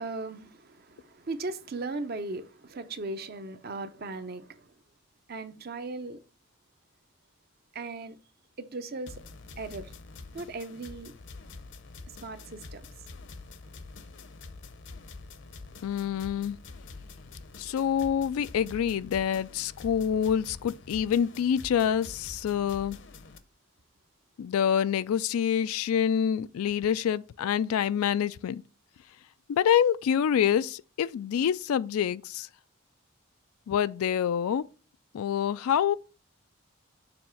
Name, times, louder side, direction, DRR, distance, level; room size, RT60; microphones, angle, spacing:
voice 1, 0.0-4.7 5.3-6.2 7.7-8.2 8.6-9.2 9.6-9.9 10.3-11.1 12.2-12.9, right 3 dB, 45° right, 0.6 m, -37 dB
sound 1, 9.1-23.4, left 3 dB, 55° left, 0.7 m, -46 dB
voice 2, 15.8-16.6 17.6-23.0 24.4-28.6 29.5-32.5 33.7-34.6 35.1-35.9, left 8 dB, 90° left, 0.3 m, -26 dB
7.0 x 3.1 x 5.7 m
head